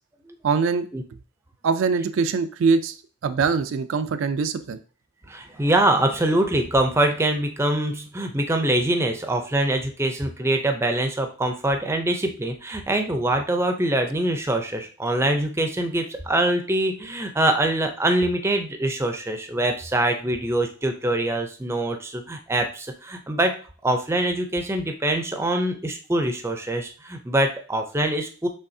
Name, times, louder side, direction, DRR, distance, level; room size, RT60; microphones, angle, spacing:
voice 1, 0.4-0.9 1.6-3.0 3.2-4.8, right 5 dB, 70° right, 10 dB, 0.4 m, -22 dB
voice 2, 5.3-23.5 23.8-28.5, right 1 dB, 10° right, 5 dB, 0.5 m, -24 dB
5.6 x 3.4 x 2.7 m, 0.38 s
head